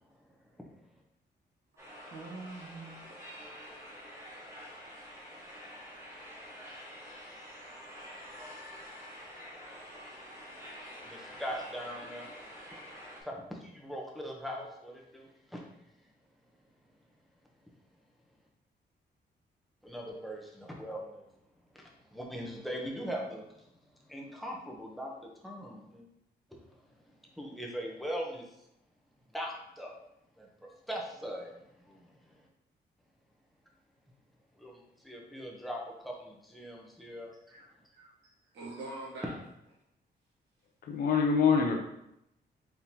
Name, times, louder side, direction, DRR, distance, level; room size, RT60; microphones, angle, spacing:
sound 1, 1.8-13.2, equal, 15° right, 1.2 m, -48 dB
voice 1, 2.1-3.0 37.5-37.6 37.9-38.1 38.5-39.3, right 2 dB, 80° right, -6 dB, 1.1 m, -43 dB
voice 2, 11.0-12.3 13.2-15.6 19.8-21.2 21.7-21.8 22.1-23.6 24.1-25.1 25.4-26.0 26.5-26.6 27.4-28.5 29.3-29.9 30.4-30.5 30.9-31.6 31.9-32.4 34.6-37.3, equal, ahead, -1 dB, 0.7 m, -40 dB
voice 3, 40.9-41.8, left 6 dB, 50° left, 2 dB, 0.5 m, -25 dB
4.5 x 3.7 x 2.8 m, 0.82 s
wide cardioid pair, 150°, 18 cm